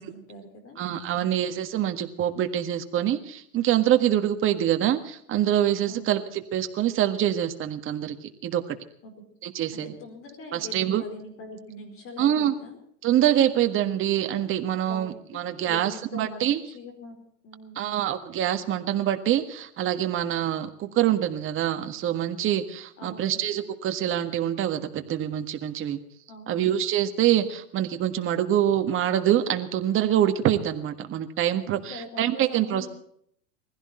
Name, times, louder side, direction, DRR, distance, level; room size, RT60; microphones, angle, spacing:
voice 1, 0.0-1.3 5.8-6.1 9.0-9.1 9.8-12.8 13.6-13.9 14.9-15.4 15.7-18.0 23.0-23.4 26.3-26.6 31.7-32.9, left 2 dB, 30° left, 5 dB, 4.7 m, -43 dB
voice 2, 0.8-8.8 9.4-9.9 10.5-11.0 12.2-12.5 13.0-16.6 17.7-26.0 26.5-32.9, right 11 dB, 30° right, 7 dB, 1.6 m, -25 dB
20.5 x 15.5 x 4.4 m, 0.66 s
supercardioid pair, 135°, 41 cm